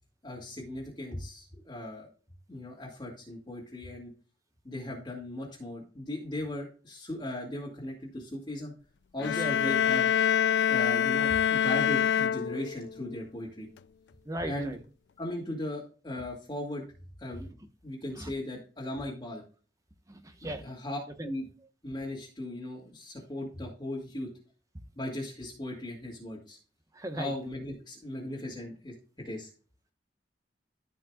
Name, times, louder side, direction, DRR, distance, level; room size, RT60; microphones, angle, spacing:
voice 1, 0.2-2.1 2.5-4.1 4.6-8.7 9.1-10.1 10.7-13.7 14.4-14.8 15.2-16.8 17.2-17.5 17.8-19.4 20.6-21.0 21.2-21.4 21.8-24.3 25.0-26.6 27.2-28.9 29.2-29.5, left 1 dB, 25° left, -5 dB, 2.3 m, -37 dB
sound 1, 9.2-13.0, left 9 dB, 75° left, 0.4 m, -26 dB
voice 2, 9.4-9.8 14.3-14.8 18.2-18.3 20.1-20.6 21.2-21.3 26.9-27.3, right 1 dB, 20° right, 7 dB, 1.2 m, -37 dB
14.5 x 5.4 x 2.4 m, 0.38 s
head